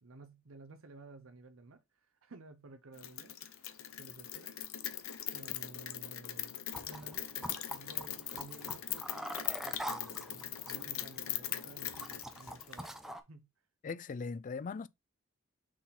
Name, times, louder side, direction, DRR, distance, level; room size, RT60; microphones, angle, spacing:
voice 1, 0.0-4.5 5.3-6.6 6.9-13.5, right 2 dB, 80° right, 0.8 m, -54 dB
Rain, 3.0-12.9, left 12 dB, 80° left, 0.7 m, -41 dB
sound 1, 6.7-13.2, equal, ahead, 0.7 m, -45 dB
voice 2, 13.8-14.9, left 4 dB, 40° left, 0.4 m, -39 dB
6.0 x 4.1 x 4.2 m
head